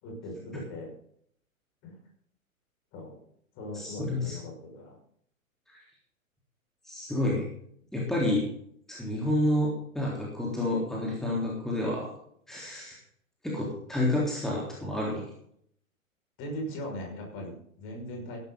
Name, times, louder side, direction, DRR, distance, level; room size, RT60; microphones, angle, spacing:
voice 1, 0.0-0.9 1.8-2.0 2.9-3.2 3.5-5.0 16.4-18.4, left 1 dB, 30° left, 1 dB, 5.9 m, -39 dB
voice 2, 3.7-4.4 5.7-5.8 6.8-7.5 7.9-8.4 8.9-12.1 12.5-13.0 13.4-15.2, left 1 dB, ahead, -4 dB, 3.7 m, -29 dB
15.5 x 12.0 x 4.0 m, 0.66 s
figure-of-eight pair, 115°, 42 cm